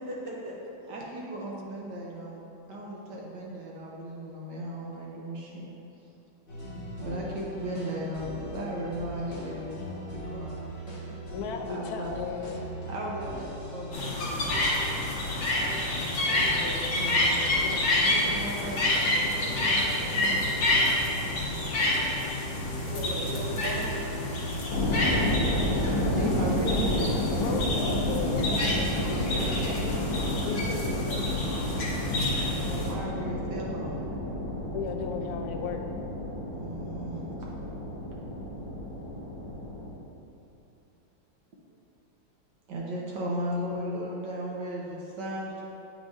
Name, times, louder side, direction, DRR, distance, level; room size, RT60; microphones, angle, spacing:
voice 1, 0.1-0.5 22.8-24.0 28.9-29.7, equal, 30° right, -7 dB, 1.3 m, -37 dB
voice 2, 0.8-2.4 2.7-5.6 7.0-10.7 11.7-12.1 12.9-14.8 16.1-20.5 26.1-27.3 32.5-34.1 36.5-37.2 42.7-45.6, right 1 dB, 70° right, -3 dB, 1.2 m, -36 dB
sound 1, 6.5-25.2, equal, 30° left, 1.4 m, -39 dB
voice 3, 11.3-12.5 27.4-29.1 29.7-31.2 34.6-35.9, left 5 dB, 70° left, 2 dB, 0.9 m, -36 dB
sound 2, 13.9-32.9, left 1 dB, 90° left, 1.8 m, -28 dB
sound 3, 24.7-39.9, left 1 dB, 55° left, 1.2 m, -30 dB
8.6 x 4.7 x 2.6 m, 2.9 s
omnidirectional pair, 2.1 m